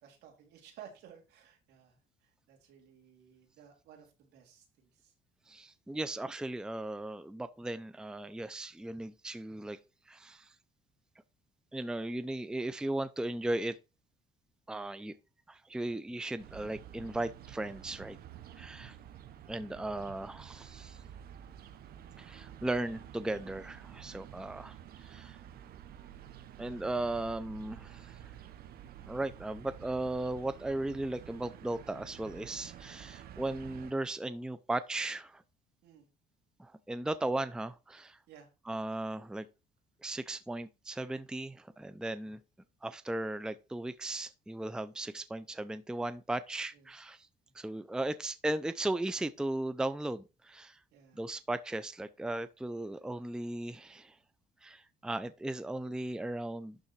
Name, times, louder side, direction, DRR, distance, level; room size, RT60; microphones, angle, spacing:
voice 1, 0.0-5.1 18.4-18.8 35.8-36.1 38.3-38.5 42.2-42.3 46.7-46.9 50.9-51.2, right 8 dB, 80° right, 3.4 m, -56 dB
voice 2, 5.5-9.8 10.1-10.5 11.7-13.8 14.7-15.1 15.5-18.2 18.6-19.0 19.5-21.0 22.2-25.4 26.6-28.3 29.1-35.4 36.6-38.2 38.7-39.5 40.0-42.4 42.8-47.3 47.5-50.8 51.2-54.2 54.6-56.8, right 2 dB, 5° right, 0.5 m, -37 dB
sound 1, 16.4-33.9, right 10 dB, 65° right, 1.0 m, -50 dB
11.5 x 3.8 x 4.6 m
cardioid pair, 110°, 17 cm